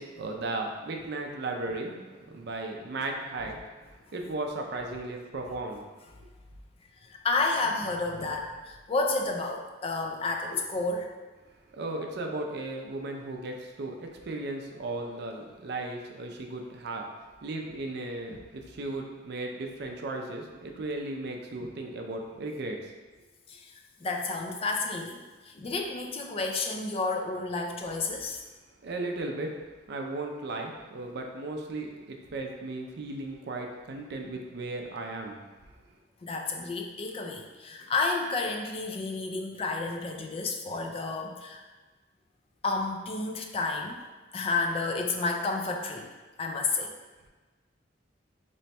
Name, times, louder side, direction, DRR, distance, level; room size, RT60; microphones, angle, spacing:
voice 1, 0.0-2.0 2.3-3.6 4.1-5.9 11.7-17.1 17.4-22.8 28.8-29.6 29.9-35.4, right 2 dB, 55° right, 2 dB, 0.4 m, -36 dB
voice 2, 7.0-11.1 18.3-18.4 23.5-23.7 24.0-28.4 36.2-41.6 42.6-44.0 44.3-46.1 46.4-46.9, left 3 dB, 30° left, 2 dB, 0.3 m, -31 dB
3.0 x 2.1 x 4.2 m, 1.3 s
head